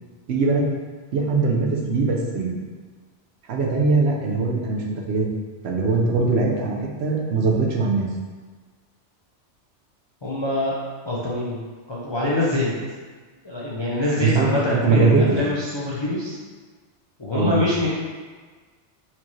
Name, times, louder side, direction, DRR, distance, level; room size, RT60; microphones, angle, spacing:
voice 1, 0.3-0.6 1.1-2.5 3.5-5.3 5.6-8.1 14.2-15.2 17.3-17.5, right 4 dB, 70° right, -1 dB, 0.8 m, -21 dB
voice 2, 10.2-10.8 11.1-11.6 11.9-12.7 13.4-16.4 17.2-17.9, left 2 dB, 40° left, -7 dB, 0.4 m, -24 dB
4.3 x 2.7 x 3.0 m, 1.4 s
omnidirectional pair, 1.2 m